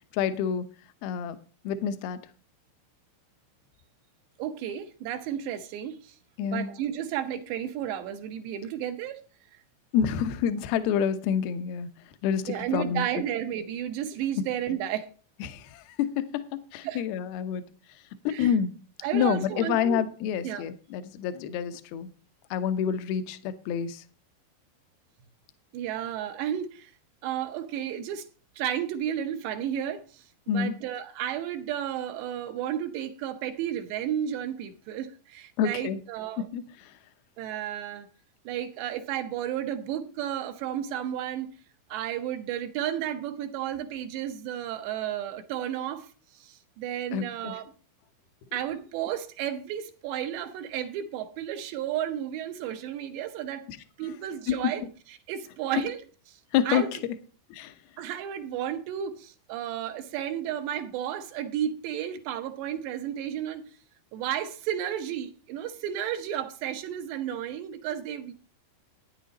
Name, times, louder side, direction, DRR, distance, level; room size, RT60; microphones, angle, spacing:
voice 1, 0.1-0.7 1.0-1.4 1.6-2.2 6.4-6.7 9.9-11.9 12.2-13.0 15.4-16.4 16.7-17.6 18.2-18.7 19.1-22.1 22.5-24.0 30.5-30.7 35.6-36.0 36.4-36.9 47.1-47.5 53.7-53.8 54.5-54.6 56.5-56.8 57.5-57.7, left 8 dB, 75° left, 2.3 m, -28 dB
voice 2, 4.4-6.2 6.4-9.2 12.5-15.1 16.8-17.0 18.3-18.5 19.0-20.0 20.4-20.6 25.7-26.9 27.2-28.3 28.6-30.2 30.5-36.5 37.4-38.1 38.5-41.5 41.9-46.1 46.3-47.7 48.5-53.6 54.0-54.8 55.3-56.0 56.7-56.9 58.0-63.6 64.1-68.3, right 10 dB, 75° right, 2.8 m, -32 dB
13.0 x 9.7 x 4.1 m
omnidirectional pair, 5.4 m